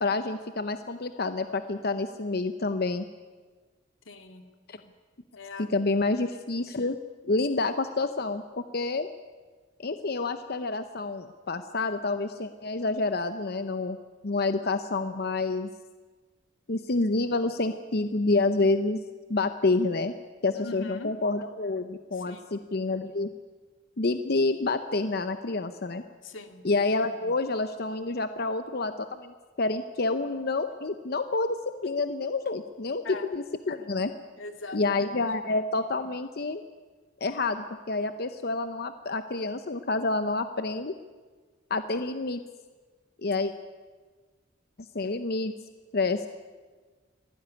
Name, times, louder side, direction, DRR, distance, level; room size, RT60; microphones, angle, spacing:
voice 1, 0.0-3.1 4.7-4.8 5.6-7.0 7.2-8.4 8.7-9.1 9.8-14.0 14.2-15.7 16.7-19.0 19.3-20.1 20.4-23.3 24.0-26.0 26.6-34.1 34.7-36.6 37.2-40.9 41.7-42.4 43.2-43.5 44.9-45.5 45.9-46.3, left 3 dB, 55° left, 9 dB, 0.8 m, -28 dB
voice 2, 4.1-4.4 5.3-5.7 20.5-21.1 22.1-22.5 26.2-26.7 33.0-33.3 34.4-35.0, left 3 dB, 90° left, 6 dB, 2.3 m, -41 dB
24.0 x 16.0 x 9.8 m, 1.4 s
head